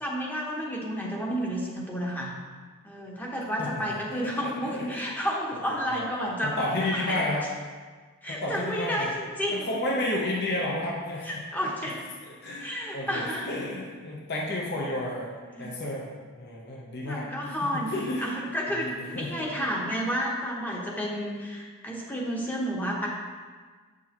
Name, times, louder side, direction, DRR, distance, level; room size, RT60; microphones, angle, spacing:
voice 1, 0.0-2.3 2.8-6.6 6.9-7.2 8.2-9.7 11.2-12.0 12.6-13.5 15.5-15.7 17.0-17.9 18.2-23.1, equal, 10° left, -3 dB, 0.9 m, -31 dB
voice 2, 3.6-4.9 5.9-6.1 6.4-7.5 8.3-9.1 9.5-11.3 12.2-18.4 18.7-19.7, left 1 dB, 50° left, -3 dB, 0.8 m, -32 dB
7.5 x 6.1 x 3.0 m, 1.5 s
head